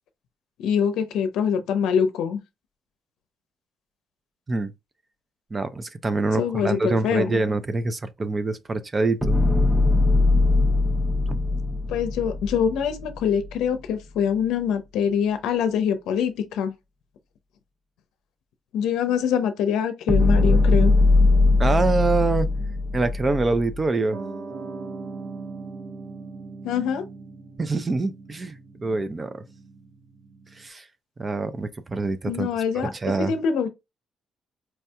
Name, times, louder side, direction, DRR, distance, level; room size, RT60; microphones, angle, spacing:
voice 1, 0.6-2.4 6.4-7.4 11.9-16.7 18.7-20.9 26.6-27.0 32.2-32.9 33.2-33.7, left 7 dB, 90° left, 0.6 m, -24 dB
voice 2, 5.5-9.4 11.3-11.4 21.6-22.5 22.9-24.2 27.6-29.4 30.5-30.9 31.2-32.5 32.7-33.3, right 3 dB, 30° right, 0.5 m, -25 dB
sound 1, 9.2-13.5 20.1-23.8, left 2 dB, 5° right, 0.9 m, -20 dB
Piano, 24.1-30.7, right 4 dB, 75° right, 1.0 m, -39 dB
4.5 x 2.7 x 2.3 m
cardioid pair, 90°, 0 cm